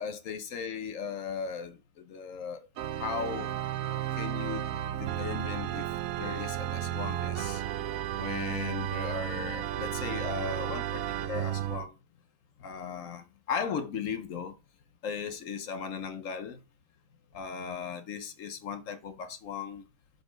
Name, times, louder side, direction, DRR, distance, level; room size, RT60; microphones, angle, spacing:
voice 1, 0.0-2.7 3.0-3.5 4.1-4.7 5.0-5.9 6.2-7.6 8.2-11.9 12.6-14.5 15.0-16.6 17.3-19.8, left 6 dB, 70° left, 1.1 m, -37 dB
Organ, 2.8-11.9, right 11 dB, 90° right, 1.0 m, -33 dB
7.0 x 4.1 x 5.1 m
omnidirectional pair, 1.4 m